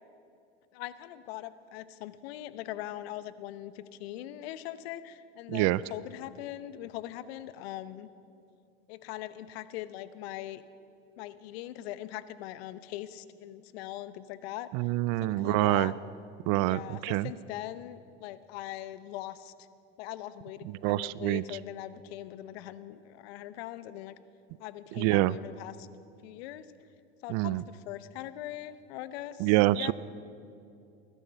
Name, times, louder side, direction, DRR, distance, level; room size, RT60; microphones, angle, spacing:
voice 1, 0.7-8.1 8.9-10.6 11.2-14.7 15.2-15.9 16.6-19.5 20.0-24.2 24.6-25.9 26.2-26.7 27.2-29.9, left 13 dB, 70° left, 14 dB, 0.9 m, -41 dB
voice 2, 5.5-5.8 14.7-15.9 16.5-17.3 20.8-21.4 25.0-25.3 27.3-27.6 29.4-29.9, right 18 dB, 50° right, 20 dB, 0.5 m, -26 dB
21.0 x 12.0 x 5.7 m, 2.6 s
hypercardioid pair, 100°, 33 cm